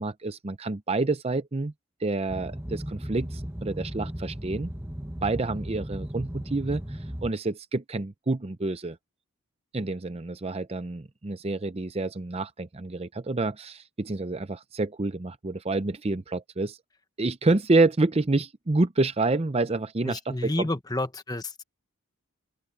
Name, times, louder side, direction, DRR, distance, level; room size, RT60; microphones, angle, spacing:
voice 1, 0.0-1.7 2.0-4.7 5.2-9.0 9.7-16.8 17.2-20.7, right 2 dB, 25° right, 0.6 m, -28 dB
Boat Water vehicle, 2.3-7.3, equal, 10° right, 1.3 m, -36 dB
voice 2, 20.0-21.6, left 1 dB, 15° left, 1.1 m, -30 dB
open air
head